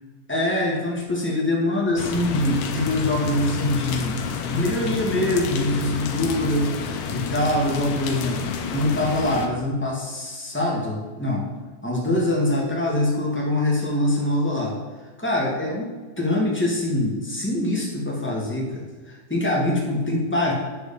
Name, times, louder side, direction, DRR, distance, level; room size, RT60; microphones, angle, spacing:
voice 1, 0.3-11.4 11.8-14.7 15.2-20.5, left 1 dB, 10° left, -3 dB, 0.5 m, -24 dB
sound 1, 2.0-9.5, left 6 dB, 75° left, 2.4 m, -29 dB
9.5 x 5.1 x 6.9 m, 1.3 s
omnidirectional pair, 3.8 m